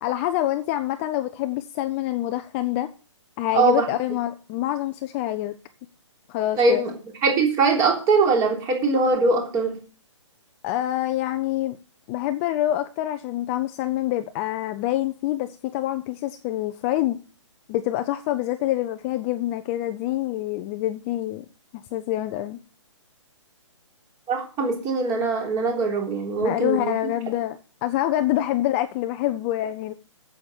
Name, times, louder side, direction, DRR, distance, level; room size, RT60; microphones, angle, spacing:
voice 1, 0.0-2.9 3.4-5.6 6.3-6.8 10.6-11.8 12.1-17.2 17.7-21.5 21.7-22.6 26.4-29.9, left 14 dB, 25° left, 9 dB, 0.7 m, -26 dB
voice 2, 6.6-6.9 7.2-9.8 24.3-27.1, right 4 dB, 20° right, 2 dB, 3.6 m, -22 dB
8.8 x 7.9 x 7.0 m, 0.36 s
hypercardioid pair, 145°, 16 cm